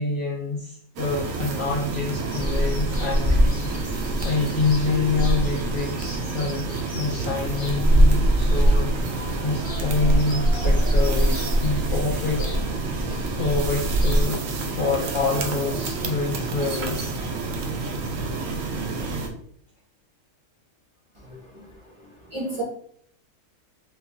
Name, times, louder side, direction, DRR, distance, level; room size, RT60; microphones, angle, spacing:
voice 1, 0.0-3.7 4.0-6.7 6.9-8.9 9.4-12.4 13.4-14.4 14.7-17.2, left 3 dB, 65° left, 0.5 m, -27 dB
sound 1, 1.0-19.3, right 3 dB, 70° right, 0.9 m, -30 dB
sound 2, 2.3-14.3, equal, 40° left, 0.8 m, -23 dB
voice 2, 21.2-21.7 22.0-22.6, right 2 dB, 25° right, 0.7 m, -34 dB
3.2 x 2.4 x 3.5 m
omnidirectional pair, 1.5 m